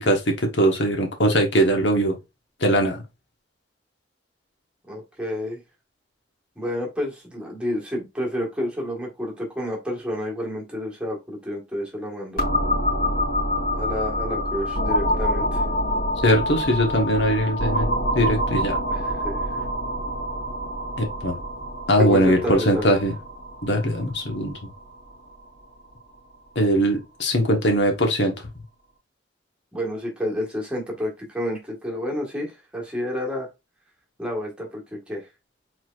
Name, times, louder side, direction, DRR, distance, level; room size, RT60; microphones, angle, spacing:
voice 1, 0.0-2.1 2.6-3.0 16.2-17.9 18.1-18.8 21.0-21.4 21.9-23.1 23.6-24.5 26.5-28.3, equal, 75° left, 1.3 m, -21 dB
voice 2, 4.9-5.6 6.6-12.4 13.7-15.6 18.9-19.6 22.0-23.0 29.7-33.5 34.2-35.2, equal, 5° right, 1.6 m, -30 dB
sound 1, 12.4-25.9, equal, 50° left, 3.0 m, -26 dB
4.6 x 4.2 x 2.5 m
head